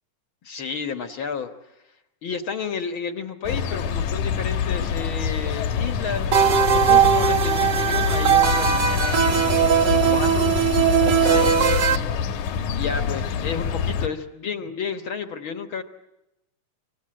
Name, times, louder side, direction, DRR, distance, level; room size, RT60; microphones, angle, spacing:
voice 1, 0.4-1.5 2.2-6.3 6.7-10.7 11.0-11.8 12.7-15.8, left 6 dB, 55° left, 7 dB, 1.6 m, -31 dB
sound 1, 3.4-14.1, left 7 dB, 75° left, 2.8 m, -25 dB
sound 2, 6.3-12.0, right 8 dB, 55° right, 1.3 m, -19 dB
25.0 x 25.0 x 8.9 m, 0.92 s
omnidirectional pair, 3.5 m